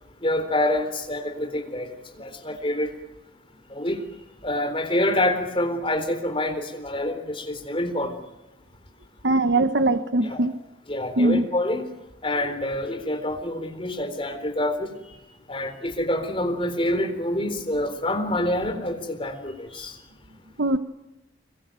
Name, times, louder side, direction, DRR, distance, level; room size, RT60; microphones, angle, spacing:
voice 1, 0.2-1.9 2.2-2.9 3.7-4.0 4.4-8.2 10.2-10.4 10.9-11.9 12.2-15.2 15.5-20.0, left 1 dB, 30° left, 6 dB, 4.0 m, -26 dB
voice 2, 9.2-10.5 11.2-11.4 20.6-20.8, right 2 dB, 70° right, 10 dB, 1.2 m, -21 dB
26.0 x 22.0 x 9.2 m, 0.99 s
head